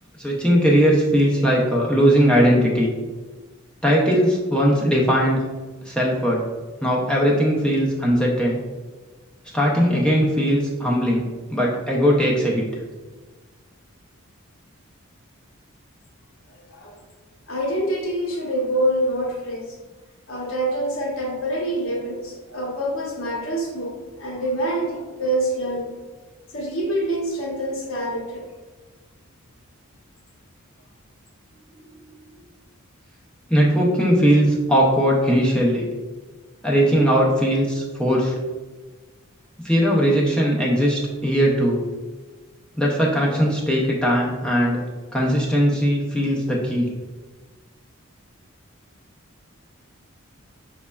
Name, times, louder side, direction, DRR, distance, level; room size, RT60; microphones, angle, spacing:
voice 1, 0.2-2.9 3.8-5.4 5.9-6.4 6.8-8.6 9.5-12.6 33.5-35.8 36.6-38.3 39.6-41.8 42.8-44.8 45.1-46.9, equal, 5° left, -4 dB, 0.4 m, -19 dB
voice 2, 16.5-17.0 17.5-19.7 20.3-23.9 24.2-25.9 26.5-28.4, right 1 dB, 65° left, -1 dB, 0.8 m, -26 dB
6.1 x 2.1 x 2.2 m, 1.3 s
head